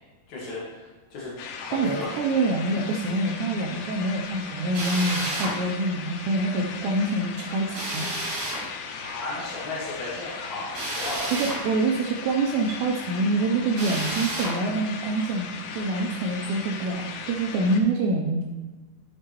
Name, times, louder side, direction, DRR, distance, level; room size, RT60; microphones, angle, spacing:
voice 1, 0.3-1.3 1.6-2.1 9.0-11.3, left 2 dB, 65° left, -7 dB, 1.8 m, -35 dB
sound 1, 1.4-17.8, left 6 dB, 85° left, 3.4 m, -38 dB
voice 2, 1.7-8.2 11.3-15.5 15.7-18.4, right 2 dB, 85° right, 0 dB, 2.5 m, -26 dB
Drill, 4.7-5.6 7.7-8.6 10.7-11.6 13.7-14.6, right 1 dB, 60° right, 4.7 m, -30 dB
11.0 x 7.1 x 3.0 m, 1.3 s
omnidirectional pair, 5.8 m